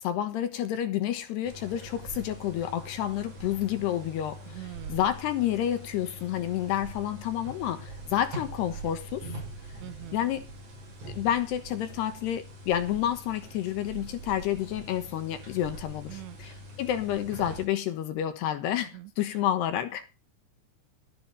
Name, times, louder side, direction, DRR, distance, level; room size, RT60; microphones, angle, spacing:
voice 1, 0.0-9.3 10.1-10.4 11.1-20.1, left 11 dB, 70° left, 2.9 m, -30 dB
sound 1, 1.4-17.7, right 1 dB, 40° right, 6.9 m, -43 dB
voice 2, 4.5-5.0 9.8-10.2 16.1-16.6 18.9-19.1, right 16 dB, 80° right, 2.6 m, -43 dB
13.5 x 12.5 x 4.0 m
omnidirectional pair, 5.7 m